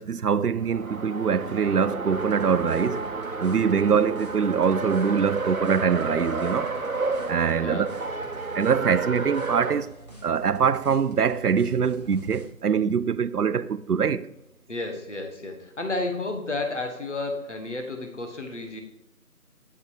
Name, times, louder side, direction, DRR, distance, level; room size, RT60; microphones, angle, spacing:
voice 1, 0.0-3.0 3.4-6.7 7.3-7.9 8.5-9.9 10.2-14.3, right 6 dB, 80° right, 0.6 m, -23 dB
Race car auto racing, 0.6-9.8, right 3 dB, 65° right, 1.0 m, -31 dB
sound 1, 2.1-7.5 7.9-12.5, right 1 dB, 25° left, 1.6 m, -46 dB
voice 2, 7.5-8.0 14.7-18.8, left 2 dB, 50° left, 1.6 m, -32 dB
9.5 x 5.8 x 4.9 m
figure-of-eight pair, 170°, 45 cm